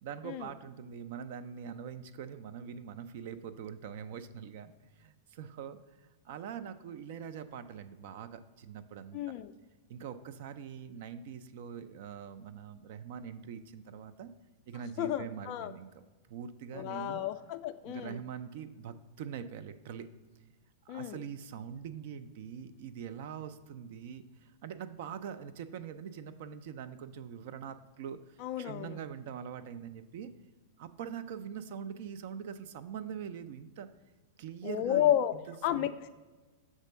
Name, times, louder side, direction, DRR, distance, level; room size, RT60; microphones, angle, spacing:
voice 1, 0.0-9.4 9.9-14.3 14.7-15.9 16.3-17.2 17.8-20.1 20.9-30.3 30.8-33.9 34.4-35.1 35.5-35.9, right 8 dB, 60° right, 10 dB, 0.4 m, -43 dB
voice 2, 9.1-9.5 15.0-15.7 16.7-18.2 20.9-21.2 28.4-29.0 34.6-35.4 35.6-36.1, left 11 dB, 45° left, 10 dB, 0.3 m, -32 dB
6.3 x 3.6 x 5.1 m, 1.3 s
hypercardioid pair, 100°, 0 cm